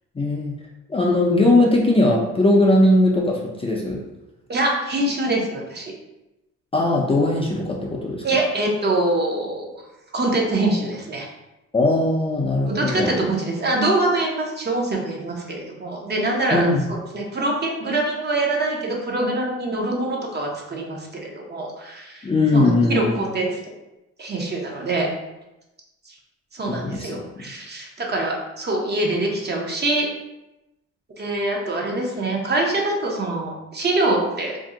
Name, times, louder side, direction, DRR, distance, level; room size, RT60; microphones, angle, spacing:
voice 1, 0.2-0.5 0.9-4.0 6.7-8.2 11.7-13.1 16.5-16.8 22.2-23.1 26.7-27.1, left 2 dB, 20° left, -2 dB, 0.4 m, -19 dB
voice 2, 4.5-5.9 8.2-9.7 10.1-11.3 12.7-23.5 24.2-25.1 26.1-26.2 26.5-30.1 31.2-34.6, right 2 dB, 35° right, -1 dB, 0.7 m, -24 dB
2.6 x 2.0 x 3.7 m, 0.96 s
cardioid pair, 90°, 30 cm